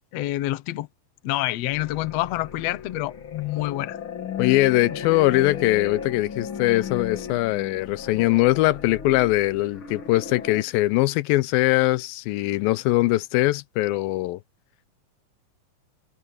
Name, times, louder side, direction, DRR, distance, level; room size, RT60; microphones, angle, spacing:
voice 1, 0.1-0.9 1.2-4.0 4.9-5.0, left 16 dB, 70° left, 1.6 m, -27 dB
sound 1, 1.7-10.6, left 7 dB, 40° left, 2.4 m, -35 dB
voice 2, 4.4-14.4, left 18 dB, 90° left, 2.4 m, -21 dB
omnidirectional pair, 4.1 m